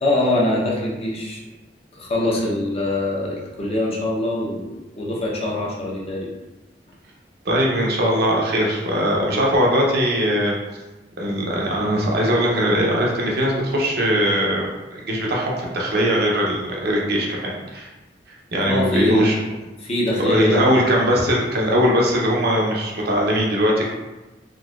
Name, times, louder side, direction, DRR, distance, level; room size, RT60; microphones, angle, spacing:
voice 1, 0.0-1.4 1.9-6.3 18.6-19.3 19.8-20.8, left 1 dB, 35° left, -4 dB, 0.7 m, -23 dB
voice 2, 7.4-10.6 11.2-17.9 18.5-19.4 20.2-23.9, equal, 60° right, -2 dB, 0.7 m, -20 dB
3.9 x 2.6 x 2.4 m, 1.1 s
head